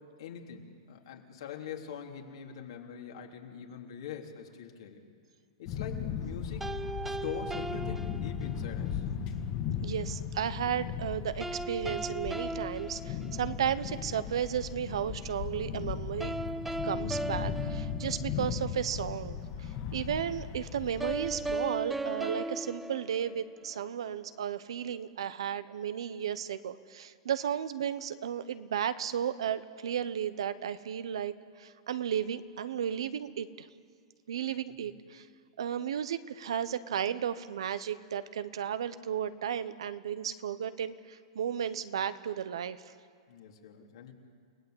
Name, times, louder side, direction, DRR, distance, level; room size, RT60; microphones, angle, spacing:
voice 1, 0.0-5.0 5.6-6.7 7.0-9.1 34.8-35.0 43.3-44.1, left 8 dB, 75° left, 1 dB, 3.4 m, -43 dB
sound 1, 5.7-21.5, left 7 dB, 45° left, 2.2 m, -37 dB
sound 2, 6.6-8.8 11.4-13.8 16.2-18.7 21.0-23.8, right 2 dB, 5° right, 0.7 m, -37 dB
voice 2, 9.8-16.3 16.8-33.7 34.3-35.3 35.6-42.8, right 9 dB, 85° right, 13 dB, 1.1 m, -34 dB
29.5 x 18.0 x 8.1 m, 2.1 s
hypercardioid pair, 135°, 3 cm